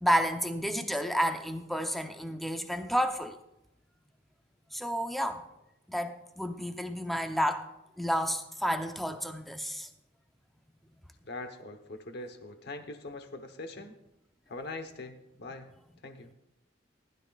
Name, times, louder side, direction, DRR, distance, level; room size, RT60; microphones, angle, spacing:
voice 1, 0.0-3.4 4.7-5.4 5.9-7.7 8.0-9.9, equal, ahead, 5 dB, 0.7 m, -30 dB
voice 2, 11.2-14.0 14.5-15.7 16.0-16.3, left 2 dB, 60° left, 7 dB, 1.1 m, -42 dB
19.0 x 12.0 x 2.4 m, 0.88 s
head